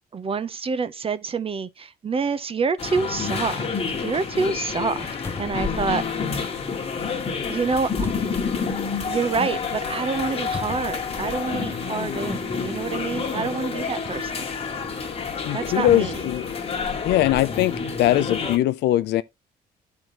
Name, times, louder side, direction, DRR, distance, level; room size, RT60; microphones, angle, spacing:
voice 1, 0.1-6.3 7.5-7.9 9.1-14.5 15.5-16.2, right 5 dB, 35° right, 0.6 m, -27 dB
sound 1, 2.8-18.6, left 5 dB, 35° left, 1.4 m, -29 dB
sound 2, 5.2-6.9 7.6-9.0 9.5-9.6 10.5-11.6 12.6-12.7 15.9-17.5 18.2-18.3, left 3 dB, 15° left, 0.8 m, -36 dB
voice 2, 11.7-12.2 13.6-13.8 15.4-16.6 17.0-19.2, left 13 dB, 80° left, 0.5 m, -22 dB
12.5 x 4.5 x 2.5 m
cardioid pair, 90°, 17 cm